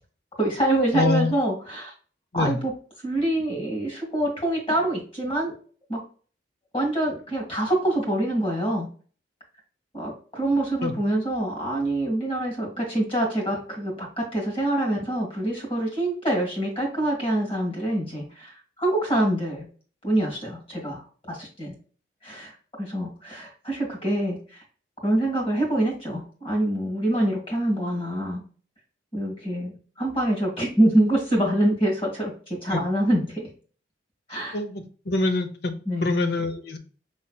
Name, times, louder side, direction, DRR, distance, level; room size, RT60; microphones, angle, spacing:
voice 1, 0.4-1.9 2.3-2.7 3.0-5.5 5.9-6.0 6.7-8.9 9.9-19.6 20.0-21.0 21.3-21.7 22.2-24.6 25.0-28.4 29.1-33.5 34.3-34.6 35.8-36.2, right 1 dB, 30° left, -2 dB, 1.8 m, -25 dB
voice 2, 0.9-1.3 2.3-2.6 10.8-10.9 32.7-32.8 34.5-35.7 36.0-36.8, left 2 dB, 60° left, 8 dB, 0.6 m, -25 dB
5.5 x 3.2 x 2.3 m, 0.40 s
head